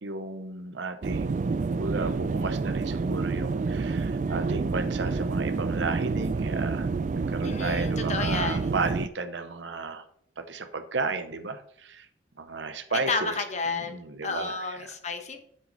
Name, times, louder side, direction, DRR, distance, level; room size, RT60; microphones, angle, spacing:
voice 1, 0.0-6.9 7.2-10.0 10.4-12.1 12.4-13.4 13.7-14.9, right 3 dB, 80° right, 8 dB, 0.8 m, -34 dB
sound 1, 1.0-9.1, right 4 dB, 40° right, 0.3 m, -28 dB
voice 2, 7.4-8.7 13.1-14.0 14.2-15.4, left 4 dB, 40° left, 6 dB, 1.1 m, -31 dB
7.9 x 6.2 x 4.0 m, 0.67 s
head